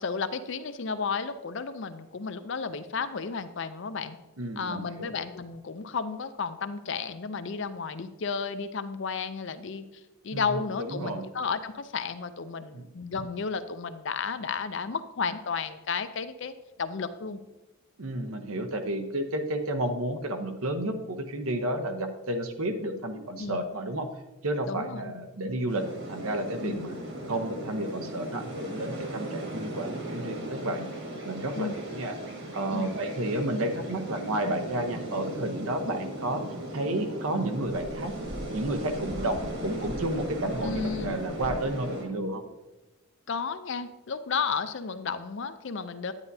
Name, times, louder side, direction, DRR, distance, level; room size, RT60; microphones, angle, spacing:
voice 1, 0.0-4.2 4.6-9.8 10.2-17.4 23.4-23.6 24.7-25.1 26.6-26.9 31.6-31.7 32.7-33.0 40.6-41.2 43.3-46.1, left 5 dB, 55° left, 11 dB, 0.5 m, -33 dB
voice 2, 4.4-5.1 10.3-10.5 10.8-11.3 12.7-12.8 18.0-24.1 24.4-27.0 27.3-30.9 31.2-32.2 32.5-36.4 36.7-38.2 38.5-42.4, right 1 dB, 75° right, 5 dB, 0.9 m, -31 dB
sound 1, 25.7-42.1, right 1 dB, 50° right, 1.7 m, -37 dB
sound 2, 37.7-41.7, left 1 dB, 5° left, 0.5 m, -43 dB
9.8 x 9.6 x 2.7 m, 1.0 s
head